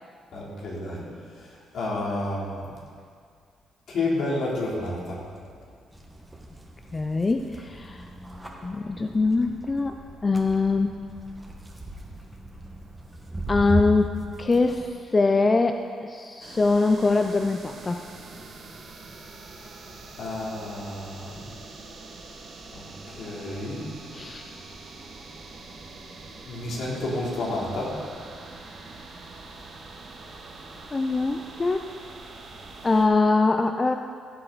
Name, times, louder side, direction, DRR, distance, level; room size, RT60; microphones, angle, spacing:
voice 1, 0.3-1.0 1.4-2.7 3.9-5.2 20.2-21.4 22.7-23.8 26.5-28.0, left 2 dB, 70° left, -4 dB, 3.1 m, -30 dB
sound 1, 5.9-14.9, right 2 dB, 10° right, 1.5 m, -36 dB
voice 2, 6.9-8.1 8.6-10.9 13.5-18.0 24.1-24.6 30.9-31.9 32.8-33.9, left 3 dB, 25° left, 6 dB, 0.5 m, -23 dB
sound 2, 16.4-33.1, right 3 dB, 50° right, 1.8 m, -44 dB
16.5 x 7.8 x 4.0 m, 2.2 s
cardioid pair, 90°, 0 cm